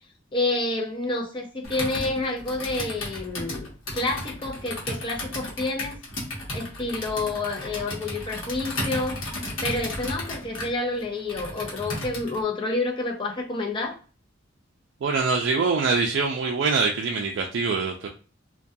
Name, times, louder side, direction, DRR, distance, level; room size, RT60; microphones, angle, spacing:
voice 1, 0.3-3.7 3.9-6.0 6.5-9.2 9.6-14.0, left 2 dB, 25° left, 0.5 m, -29 dB
Computer keyboard, 1.6-12.4, left 1 dB, 80° left, 0.9 m, -34 dB
voice 2, 15.0-18.1, right 4 dB, 65° right, 0.3 m, -24 dB
2.2 x 2.2 x 2.6 m
head